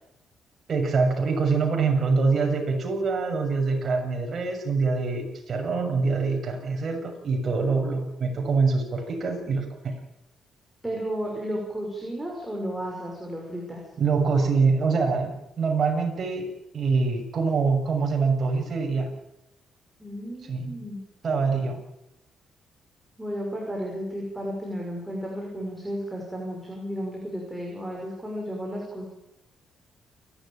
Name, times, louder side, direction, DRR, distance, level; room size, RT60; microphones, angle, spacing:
voice 1, 0.7-10.0 14.0-16.5 16.7-19.1 20.5-20.8 21.2-21.8, right 4 dB, 45° right, 3 dB, 6.9 m, -25 dB
voice 2, 10.8-13.8 20.0-21.0 23.2-29.1, equal, 10° right, -1 dB, 5.9 m, -33 dB
29.0 x 12.5 x 9.0 m, 0.84 s
cardioid pair, 120°, 0 cm